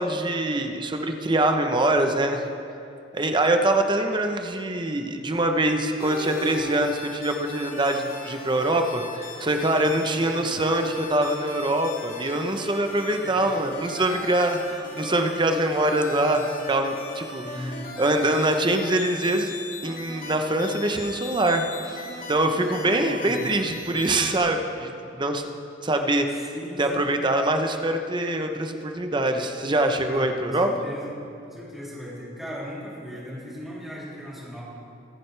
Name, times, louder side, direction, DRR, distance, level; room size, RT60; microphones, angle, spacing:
voice 1, 0.0-2.4 3.1-19.5 19.8-25.5 25.8-26.5 26.8-30.7, right 1 dB, 25° right, 5 dB, 0.8 m, -24 dB
sound 1, 6.0-24.4, left 2 dB, 45° left, 2.0 m, -39 dB
voice 2, 13.2-13.5 17.4-17.8 23.1-23.5 26.5-27.1 30.1-31.1 31.4-34.6, equal, ahead, -8 dB, 3.2 m, -37 dB
23.5 x 9.1 x 3.3 m, 2.7 s
head